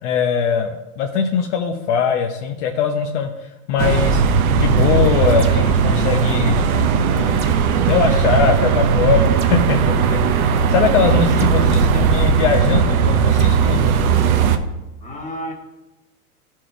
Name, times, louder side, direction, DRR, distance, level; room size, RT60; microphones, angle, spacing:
voice 1, 0.0-4.2 4.5-7.5 7.9-14.0, left 6 dB, 50° left, 3 dB, 0.9 m, -21 dB
sound 1, 3.8-14.6, right 6 dB, 70° right, 0.9 m, -17 dB
sound 2, 5.4-5.8 7.4-7.7 9.4-9.7 11.4-11.6 13.4-13.6, right 6 dB, 15° right, 0.4 m, -35 dB
voice 2, 11.4-11.8 15.0-15.5, left 1 dB, 15° left, 0 dB, 1.6 m, -31 dB
11.5 x 4.6 x 4.5 m, 1.0 s
hypercardioid pair, 130°, 45 cm